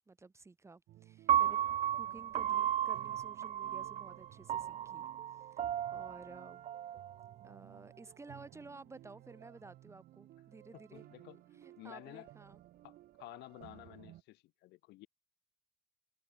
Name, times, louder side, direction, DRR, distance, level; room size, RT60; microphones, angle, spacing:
voice 1, 0.0-6.7 7.4-11.0 11.5-12.6, right 3 dB, 15° right, 0.9 m, -54 dB
sound 1, 0.9-14.2, right 14 dB, 65° right, 0.7 m, -57 dB
Piano, 1.3-7.5, right 10 dB, 40° right, 0.4 m, -34 dB
voice 2, 10.7-11.4 11.8-12.3 12.8-15.1, left 19 dB, 85° left, 1.6 m, -52 dB
cardioid pair, 110°, 17 cm